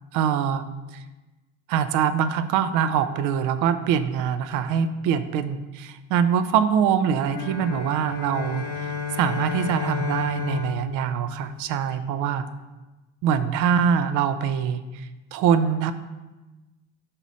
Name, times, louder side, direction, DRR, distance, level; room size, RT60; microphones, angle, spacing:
voice 1, 0.1-0.6 0.9-1.0 1.7-12.5 13.2-15.9, right 8 dB, 60° right, 12 dB, 0.5 m, -24 dB
sound 1, 7.2-11.9, left 6 dB, 85° left, 1.1 m, -32 dB
5.5 x 4.1 x 6.1 m, 1.1 s
cardioid pair, 160°, 35 cm